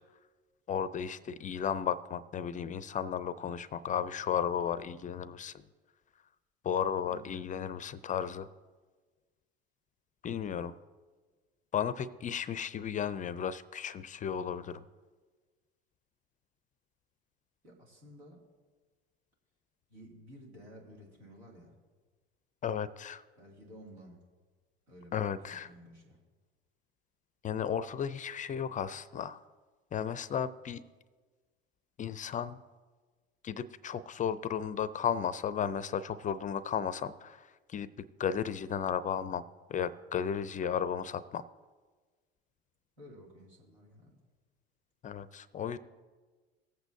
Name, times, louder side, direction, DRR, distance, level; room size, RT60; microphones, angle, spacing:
voice 1, 0.7-5.6 6.6-8.5 10.2-10.7 11.7-14.8 22.6-23.2 25.1-25.7 27.4-29.4 29.9-30.8 32.0-32.6 33.4-37.9 38.2-39.4 39.7-41.4 45.0-45.8, left 8 dB, 25° left, 16 dB, 0.4 m, -34 dB
voice 2, 7.1-7.4 17.6-18.5 19.9-21.8 23.4-24.2 24.9-26.2 43.0-44.2, equal, 90° right, -2 dB, 2.5 m, -53 dB
18.5 x 8.0 x 2.6 m, 1.4 s
hypercardioid pair, 75°, 31 cm